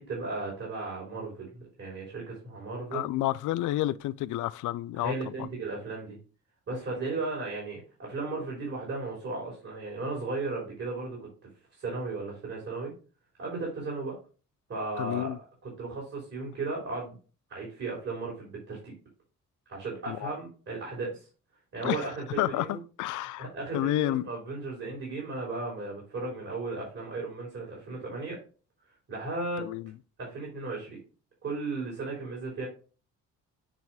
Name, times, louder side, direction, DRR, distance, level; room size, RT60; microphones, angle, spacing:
voice 1, 0.0-3.0 4.9-6.2 6.7-11.2 11.8-12.9 13.4-14.2 14.7-15.3 15.6-17.2 17.5-18.9 19.7-21.3 21.7-22.8 23.4-28.4 29.1-29.7 30.2-31.0 31.4-32.7, right 3 dB, 50° right, 3.6 m, -35 dB
voice 2, 2.9-5.5 15.0-15.4 20.1-20.4 21.8-22.0 22.4-23.5 23.7-24.2 29.6-29.9, left 15 dB, 80° left, 0.5 m, -30 dB
7.5 x 3.1 x 4.6 m
cardioid pair, 90°, 30 cm